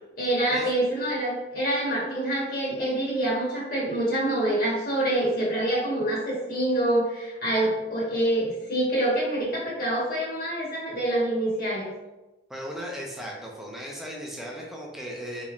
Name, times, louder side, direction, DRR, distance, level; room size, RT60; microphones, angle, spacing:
voice 1, 0.2-11.9, right 1 dB, 55° left, -5 dB, 1.2 m, -26 dB
voice 2, 12.5-15.4, equal, ahead, -2 dB, 0.6 m, -36 dB
4.0 x 3.2 x 2.4 m, 1.1 s
head